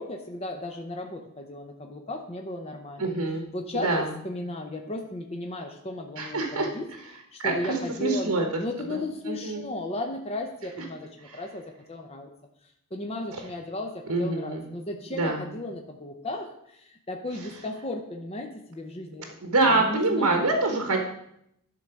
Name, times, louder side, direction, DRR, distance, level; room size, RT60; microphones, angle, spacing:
voice 1, 0.0-3.1 3.5-6.9 7.3-8.3 8.6-11.6 11.9-12.3 12.9-19.3 19.7-20.5, left 1 dB, 25° left, 3 dB, 0.7 m, -35 dB
voice 2, 3.0-3.4 3.8-4.1 6.2-6.7 7.4-8.6 8.9-9.0 9.3-9.6 11.2-11.4 14.1-14.6 15.2-15.4 19.4-21.0, right 2 dB, 70° right, 2 dB, 1.2 m, -25 dB
11.5 x 3.9 x 5.7 m, 0.75 s
head